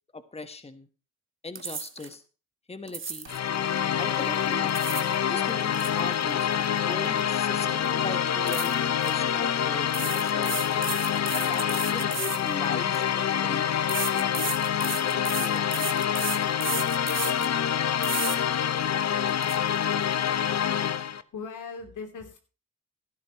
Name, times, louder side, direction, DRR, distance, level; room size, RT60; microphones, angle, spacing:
voice 1, 0.1-0.9 1.4-2.2 2.7-3.3 4.0-4.7 5.3-10.6 11.3-14.3 14.9-16.1, left 3 dB, 20° left, 10 dB, 1.3 m, -39 dB
sound 1, 1.5-2.1 2.9-3.4 4.5-5.1 5.5-7.3 7.6-7.9 8.5-9.1 9.9-13.0 13.9-17.5 18.0-18.4 18.8-18.9 19.3-19.6, right 6 dB, 40° right, 1.4 m, -34 dB
sound 2, 3.3-21.2, left 9 dB, 60° left, 0.8 m, -26 dB
Guitar, 3.5-12.2, right 1 dB, ahead, 3.7 m, -51 dB
voice 2, 20.9-22.4, left 5 dB, 85° left, 5 dB, 3.1 m, -40 dB
16.0 x 12.0 x 3.0 m, 0.34 s
cardioid pair, 80°, 30 cm